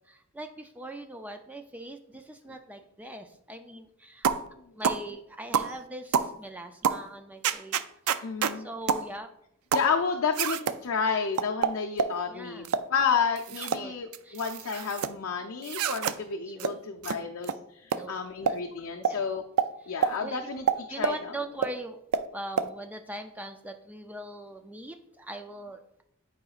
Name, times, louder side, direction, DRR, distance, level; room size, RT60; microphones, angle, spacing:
voice 1, 0.1-4.3 4.8-7.8 8.5-9.3 12.3-12.7 13.5-13.9 14.2-14.4 16.5-16.7 17.9-18.2 18.4-18.6 19.1-19.2 19.8-19.9 20.2-20.5 20.9-22.0 22.3-26.0, right 1 dB, 5° right, 6 dB, 0.3 m, -41 dB
sound 1, 4.2-4.5 4.8-5.0 5.5-5.7 6.1-6.3 6.8-7.0 7.4-8.6 8.9-9.1 9.7-9.9 10.3-10.8 11.4-12.2 12.6-12.9 13.4-13.8 14.1-15.1 15.6-16.2 16.6-16.7 17.0-17.2 17.4-17.6 17.9-18.0 18.5-18.6 19.0-19.2 19.6-19.7 20.0-20.1 20.7-21.2 21.6-21.7 22.1-22.2 22.6-22.7, right 7 dB, 75° right, 0.4 m, -27 dB
voice 2, 8.2-8.7 9.7-19.4 19.9-21.3, left 5 dB, 70° left, 3 dB, 0.5 m, -31 dB
10.5 x 4.9 x 2.4 m, 0.76 s
head